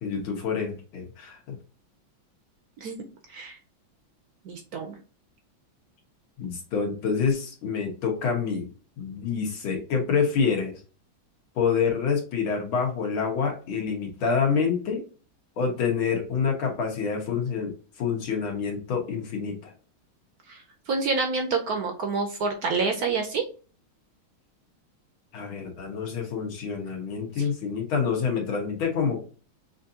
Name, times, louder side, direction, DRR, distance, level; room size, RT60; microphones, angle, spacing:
voice 1, 0.0-1.4 6.4-8.7 9.0-10.8 11.6-15.0 15.6-17.7 18.0-19.7 25.3-29.2, left 6 dB, 75° left, 0 dB, 2.2 m, -27 dB
voice 2, 4.4-5.0 20.5-23.4, right 4 dB, 65° right, 4 dB, 0.9 m, -28 dB
6.0 x 2.6 x 2.8 m, 0.37 s
omnidirectional pair, 2.2 m